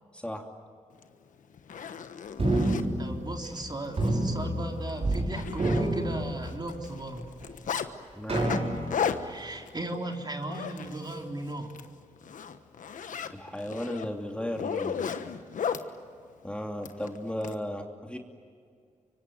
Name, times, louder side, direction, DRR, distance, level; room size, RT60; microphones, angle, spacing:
voice 1, 0.1-0.5 8.2-8.6 13.3-15.1 16.4-18.2, left 1 dB, 10° left, 2 dB, 2.8 m, -35 dB
Zipper (clothing), 1.0-1.1 1.5-2.9 3.4-3.6 3.9-4.1 4.4-4.5 4.9-6.2 6.5-7.9 8.3-11.2 11.6-11.9 12.2-15.9 16.8-17.5, left 7 dB, 80° left, 1.3 m, -35 dB
sound 1, 2.4-3.6 4.0-5.3 5.5-6.8 7.4-7.5 8.3-9.1, right 1 dB, 50° right, 6.3 m, -28 dB
voice 2, 3.0-7.3 9.2-11.7, right 2 dB, 35° right, 2 dB, 3.8 m, -36 dB
25.5 x 24.0 x 9.3 m, 2.2 s
cardioid pair, 50°, 13 cm